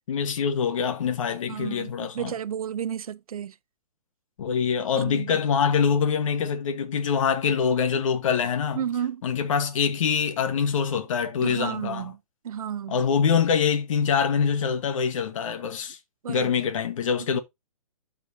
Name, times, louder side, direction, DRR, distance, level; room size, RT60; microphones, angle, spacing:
voice 1, 0.1-2.3 4.4-8.8 9.2-12.1 12.9-16.0 16.3-17.4, left 6 dB, 60° left, 1.5 m, -24 dB
voice 2, 1.5-3.5 5.0-5.4 8.8-9.2 11.4-12.1 12.4-13.0 16.2-16.5 17.3-17.4, right 9 dB, 75° right, 0.7 m, -32 dB
12.0 x 4.4 x 2.8 m
hypercardioid pair, 150°, 19 cm